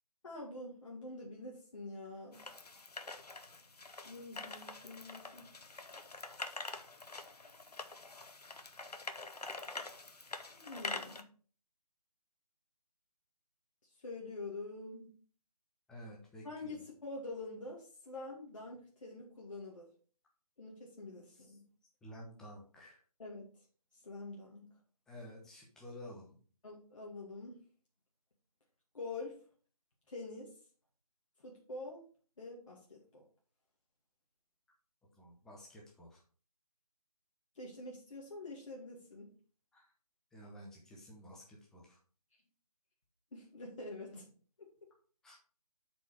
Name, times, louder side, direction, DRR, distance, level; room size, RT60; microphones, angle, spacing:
voice 1, 0.2-2.6 4.0-5.5 10.5-11.2 14.0-15.2 16.4-19.9 20.6-21.6 23.2-23.4 24.0-24.6 26.6-27.6 28.9-29.4 30.1-30.5 31.4-32.0 32.4-33.2 37.6-39.3 43.3-44.3 44.6-44.7, left 2 dB, 55° left, -3 dB, 2.2 m, -46 dB
sound 1, 2.3-11.2, left 3 dB, 80° left, 1.1 m, -46 dB
voice 2, 15.9-16.7 21.3-21.6 22.0-23.0 25.1-26.4 35.2-36.2 39.7-39.9 40.3-42.0 45.2-45.4, equal, 5° left, -3 dB, 0.9 m, -52 dB
8.0 x 5.0 x 4.6 m, 0.42 s
figure-of-eight pair, 155°, 20 cm